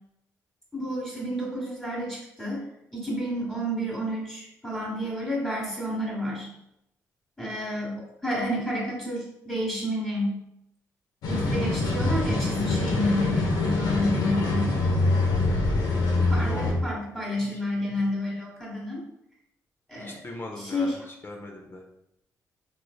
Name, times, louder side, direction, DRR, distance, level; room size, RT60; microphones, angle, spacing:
voice 1, 0.7-2.6 2.9-6.5 7.4-10.4 11.3-14.8 15.7-19.0 19.9-20.2 20.5-21.0, left 1 dB, 5° left, -4 dB, 1.3 m, -30 dB
sound 1, 11.2-16.7, left 2 dB, 80° left, 0.7 m, -24 dB
voice 2, 16.3-16.8 17.4-17.6 19.9-21.9, left 2 dB, 35° left, 0 dB, 0.5 m, -39 dB
3.2 x 3.1 x 2.2 m, 0.83 s
supercardioid pair, 65°, 7 cm